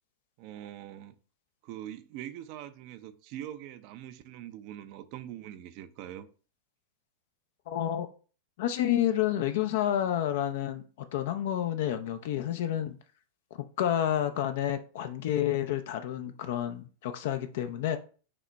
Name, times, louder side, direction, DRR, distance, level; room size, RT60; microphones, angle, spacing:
voice 1, 0.4-1.2 1.6-6.3, right 11 dB, 50° right, 0.5 m, -43 dB
voice 2, 7.7-8.1 8.6-10.8 11.1-13.0 13.8-18.0, left 11 dB, 60° left, 0.5 m, -29 dB
5.1 x 2.9 x 3.4 m
hypercardioid pair, 100°, 0 cm